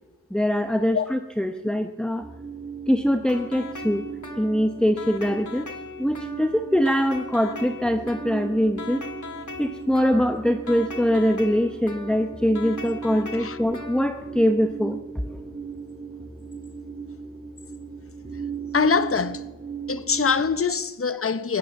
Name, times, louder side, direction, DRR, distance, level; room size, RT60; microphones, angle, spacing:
voice 1, 0.3-2.3 2.9-4.1 4.4-5.7 6.0-9.0 9.6-15.0 15.3-15.4, equal, 5° left, 0.8 m, -23 dB
sound 1, 2.2-20.4, right 5 dB, 20° right, 2.1 m, -38 dB
sound 2, 3.2-14.3, left 4 dB, 75° left, 1.6 m, -39 dB
voice 2, 18.7-19.5 19.9-21.6, left 5 dB, 45° left, 0.8 m, -23 dB
16.5 x 11.0 x 7.1 m
wide cardioid pair, 45°, 30 cm